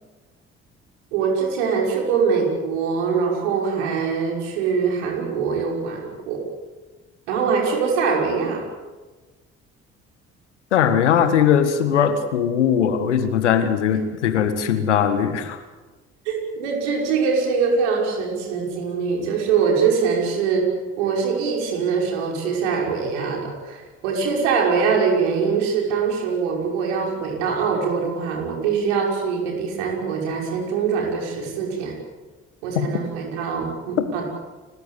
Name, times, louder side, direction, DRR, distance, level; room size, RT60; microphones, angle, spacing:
voice 1, 1.1-6.4 7.3-8.6 16.3-20.7 21.0-31.9 32.6-34.3, right 5 dB, 80° right, 0 dB, 5.8 m, -23 dB
voice 2, 10.7-15.6 32.7-32.9, left 8 dB, 85° left, 9 dB, 1.7 m, -19 dB
30.0 x 15.0 x 8.3 m, 1.2 s
hypercardioid pair, 50°, 34 cm